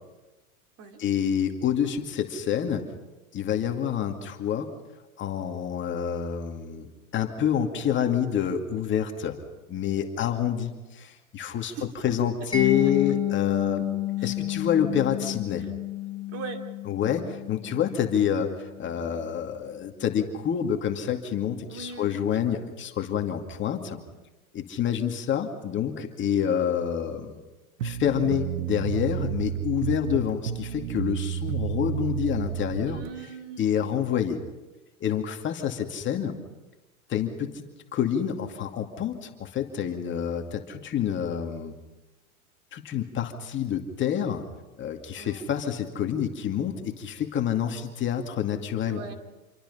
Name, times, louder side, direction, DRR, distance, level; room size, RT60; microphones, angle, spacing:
voice 1, 1.0-2.8 3.3-4.7 5.2-9.4 9.7-11.7 12.0-13.8 14.2-15.6 16.9-24.0 24.5-27.4 27.8-33.0 33.6-34.4 35.0-36.4 37.1-41.7 42.7-44.4 44.8-49.0, left 9 dB, 25° left, 4 dB, 2.4 m, -28 dB
Mallet percussion, 12.5-19.3, left 13 dB, 10° left, 2.3 m, -31 dB
voice 2, 12.6-12.9 14.2-14.4 15.6-15.7 16.3-16.6 21.7-22.2 22.5-22.6 32.9-33.8 45.2-45.5 48.8-49.1, right 5 dB, 35° right, 4 dB, 2.9 m, -41 dB
sound 1, 27.8-33.1, right 10 dB, 70° right, 1.2 m, -31 dB
27.5 x 24.0 x 5.6 m, 1.1 s
hypercardioid pair, 120°, 42 cm